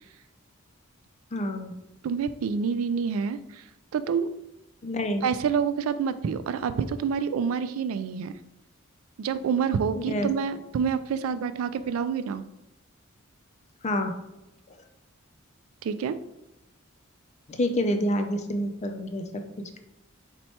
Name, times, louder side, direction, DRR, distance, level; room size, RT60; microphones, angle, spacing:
voice 1, 1.3-1.7 4.8-5.2 9.9-10.3 13.8-14.1 17.5-19.8, equal, 35° left, 7 dB, 0.4 m, -28 dB
voice 2, 2.0-3.4 3.9-4.3 5.2-8.3 9.2-12.4 15.8-16.2, right 6 dB, 85° right, 13 dB, 0.3 m, -27 dB
4.3 x 2.2 x 4.2 m, 0.92 s
head